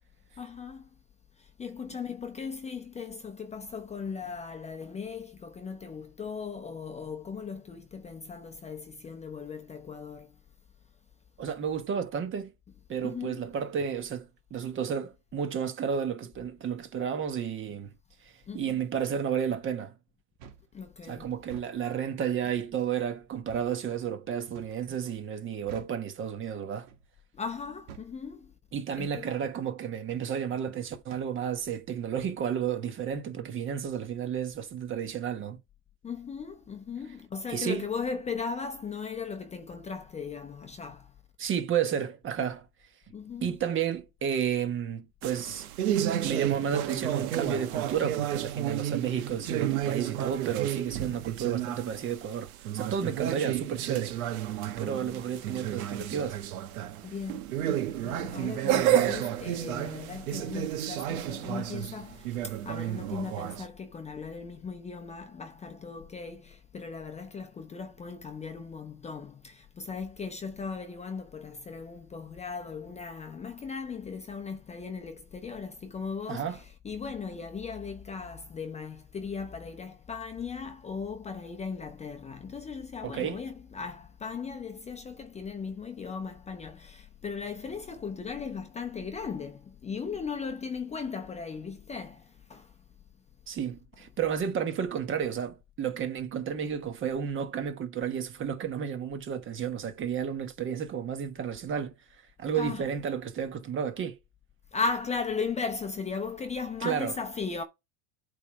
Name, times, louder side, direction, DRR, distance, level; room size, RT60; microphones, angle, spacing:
voice 1, 0.4-0.9 1.4-10.4 13.0-13.4 18.5-18.8 20.7-21.3 27.3-28.5 28.9-29.3 36.0-41.1 43.1-43.6 53.0-53.1 57.0-92.7 102.5-102.9 104.7-107.6, left 5 dB, 15° left, 0.8 m, -37 dB
voice 2, 11.4-12.5 12.9-17.9 18.2-19.9 21.1-26.9 28.7-35.6 37.5-37.9 41.4-42.7 43.4-45.7 46.2-54.2 54.8-56.4 76.3-76.6 83.0-83.4 93.5-101.9 102.4-104.2 106.8-107.1, right 8 dB, 30° right, 1.2 m, -32 dB
sound 1, 20.4-20.7 21.4-21.7 22.4-22.7 23.5-23.7 24.5-24.8 25.7-26.0 26.9-27.1 27.9-28.1 28.9-29.1 30.1-30.3 31.1-31.3 32.2-32.4, right 8 dB, 70° right, 2.1 m, -48 dB
sound 2, 45.2-63.7, right 11 dB, 90° right, 1.3 m, -31 dB
8.2 x 3.5 x 5.3 m
supercardioid pair, 135°, 41 cm